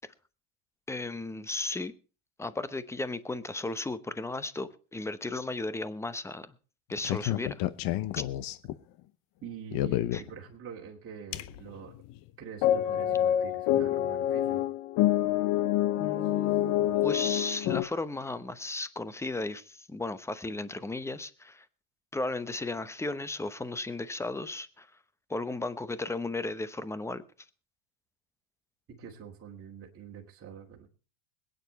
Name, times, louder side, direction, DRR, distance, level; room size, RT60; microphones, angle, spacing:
voice 1, 0.9-1.9 2.4-6.5 6.9-7.6 8.2-8.3 10.1-10.2 16.0-21.6 22.1-24.9 25.3-27.2, left 2 dB, 5° left, 0.8 m, -35 dB
sound 1, 6.9-8.7 9.7-10.3 11.3-11.8 12.1-12.2 12.6-17.8, left 12 dB, 50° left, 0.9 m, -27 dB
voice 2, 9.4-12.0 12.4-14.7 29.0-30.9, right 7 dB, 30° right, 2.8 m, -45 dB
21.5 x 9.4 x 4.1 m
supercardioid pair, 110°, 43 cm